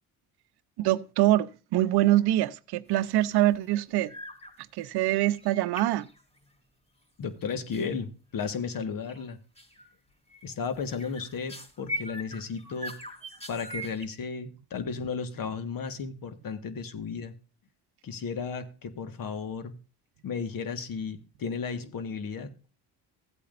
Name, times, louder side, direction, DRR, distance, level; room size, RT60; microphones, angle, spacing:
voice 1, 0.8-4.1 4.8-6.1, right 15 dB, 65° right, 0.7 m, -24 dB
sound 1, 2.9-3.3 3.5-3.8 4.1-4.5 4.8-6.6 7.7-7.9 8.4-8.8 9.1-9.3 9.6-9.9 10.3-14.1, right 1 dB, 15° left, 3.5 m, -41 dB
voice 2, 7.2-9.4 10.4-13.0 13.5-17.3 18.0-19.8 20.2-22.6, left 5 dB, 55° left, 1.6 m, -34 dB
15.5 x 8.5 x 2.5 m
supercardioid pair, 70°, 41 cm